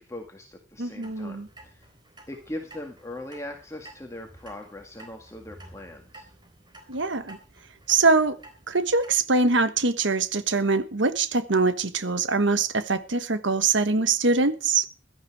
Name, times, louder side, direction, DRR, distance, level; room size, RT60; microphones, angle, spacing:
voice 1, 0.0-1.9 2.3-6.3, left 1 dB, 15° left, 1.8 m, -40 dB
voice 2, 0.8-1.5 6.9-7.4 7.9-8.4 8.7-14.9, right 3 dB, 65° right, 1.3 m, -23 dB
Clock, 1.0-9.1, right 1 dB, 20° right, 3.8 m, -51 dB
16.5 x 12.5 x 4.7 m
head